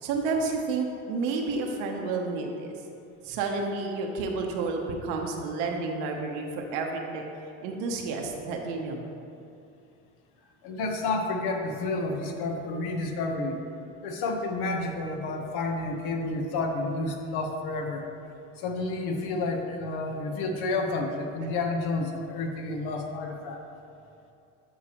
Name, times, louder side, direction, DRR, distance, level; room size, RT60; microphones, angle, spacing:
voice 1, 0.0-2.7 3.2-7.2 7.6-9.0, right 4 dB, 80° right, 2 dB, 1.0 m, -30 dB
voice 2, 10.6-13.6 14.0-18.0 18.6-23.6, left 2 dB, 70° left, 3 dB, 1.1 m, -30 dB
12.5 x 4.7 x 3.0 m, 2.6 s
supercardioid pair, 85°, 39 cm